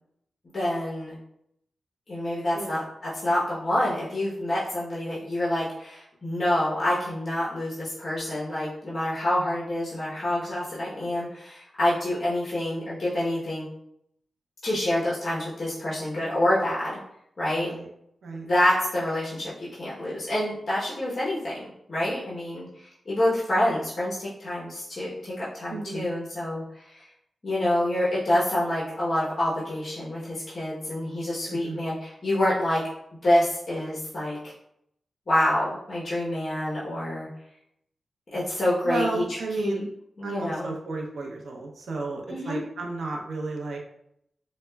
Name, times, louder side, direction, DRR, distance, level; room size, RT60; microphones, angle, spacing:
voice 1, 0.5-1.1 2.1-13.7 14.6-17.0 17.4-17.7 18.3-26.6 26.9-27.0 27.4-32.8 33.2-34.5 35.3-37.3 38.3-39.2 39.6-39.8 40.2-40.7 42.3-42.6, left 1 dB, 40° left, -8 dB, 0.9 m, -27 dB
voice 2, 25.7-26.1 31.5-31.8 38.8-39.9 40.2-43.8, right 3 dB, 85° right, 1 dB, 0.6 m, -33 dB
4.8 x 2.1 x 2.2 m, 0.74 s
wide cardioid pair, 130°, 0 cm